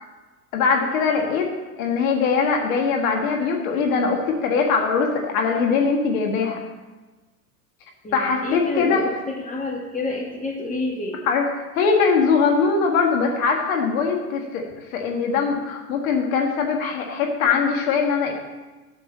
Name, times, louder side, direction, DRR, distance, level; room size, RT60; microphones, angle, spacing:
voice 1, 0.5-1.5 1.8-6.6 8.1-9.0 11.3-18.3, left 5 dB, 60° left, 2 dB, 1.7 m, -21 dB
voice 2, 8.0-11.2, left 2 dB, 15° left, 0 dB, 2.1 m, -29 dB
8.2 x 6.6 x 7.6 m, 1.2 s
hypercardioid pair, 100°, 46 cm